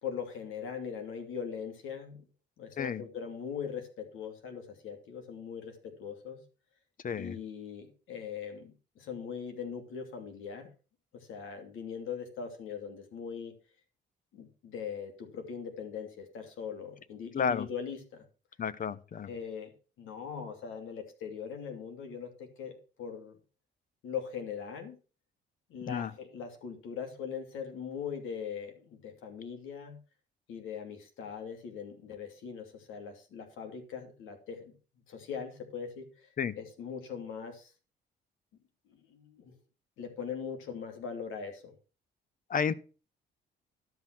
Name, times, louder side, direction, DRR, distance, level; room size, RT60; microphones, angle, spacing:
voice 1, 0.0-2.2 2.6-6.4 7.2-10.7 11.1-13.5 14.3-18.2 19.2-19.7 20.0-23.4 24.0-25.0 25.7-30.0 30.5-34.7 35.1-36.3 36.5-37.7 38.9-39.6 40.0-41.7, left 7 dB, 85° left, 2.7 m, -41 dB
voice 2, 7.0-7.3 17.3-17.7 18.6-19.3 25.9-26.1 36.4-36.5 42.5-42.8, left 7 dB, 45° left, 0.8 m, -31 dB
12.5 x 5.9 x 6.0 m
cardioid pair, 90°, 20 cm